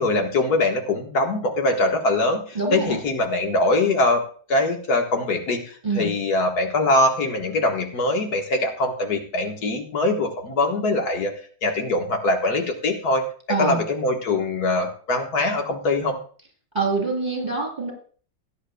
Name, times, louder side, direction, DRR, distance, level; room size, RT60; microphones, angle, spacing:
voice 1, 0.0-4.2 4.5-11.3 11.6-13.2 13.6-16.2, left 2 dB, 85° left, 3 dB, 1.9 m, -22 dB
voice 2, 2.6-3.0 5.8-6.1 13.5-13.8 16.8-17.9, right 3 dB, 20° right, 0 dB, 3.4 m, -25 dB
18.5 x 9.7 x 2.3 m, 0.43 s
omnidirectional pair, 1.6 m